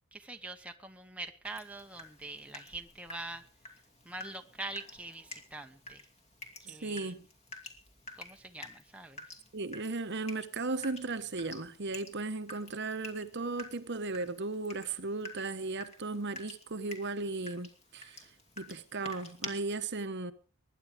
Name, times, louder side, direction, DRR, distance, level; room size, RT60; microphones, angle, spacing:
voice 1, 0.1-3.5 4.0-6.1 6.6-7.1 8.2-9.2, right 2 dB, 5° right, 1.0 m, -44 dB
Water tap faucet / Drip, 1.4-19.5, left 2 dB, 30° left, 2.6 m, -50 dB
voice 2, 6.7-7.3 9.5-18.2 18.6-20.3, right 3 dB, 50° right, 1.1 m, -36 dB
21.5 x 10.5 x 5.1 m
head